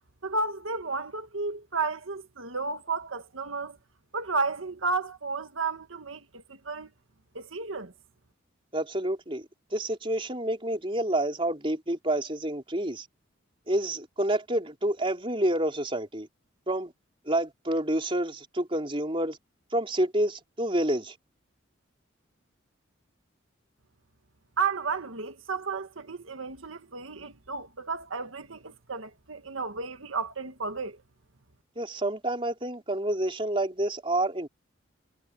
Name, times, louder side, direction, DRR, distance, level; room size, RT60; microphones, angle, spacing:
voice 1, 0.2-3.8 4.1-6.9 7.3-7.9 24.6-31.0, right 4 dB, 90° right, 1.7 m, -32 dB
voice 2, 8.7-9.4 9.7-13.1 13.7-16.3 16.7-16.9 17.3-19.4 19.7-21.1 31.8-34.5, right 1 dB, 25° right, 4.0 m, -28 dB
head